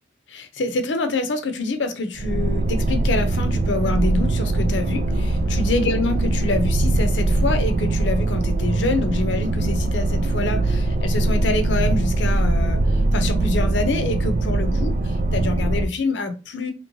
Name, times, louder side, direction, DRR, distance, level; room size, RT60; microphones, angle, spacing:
voice 1, 0.3-12.8 13.1-14.9 15.3-16.7, left 3 dB, 85° left, 0.6 m, -26 dB
sound 1, 2.2-15.9, right 2 dB, 45° right, 0.3 m, -21 dB
3.1 x 3.0 x 2.6 m
head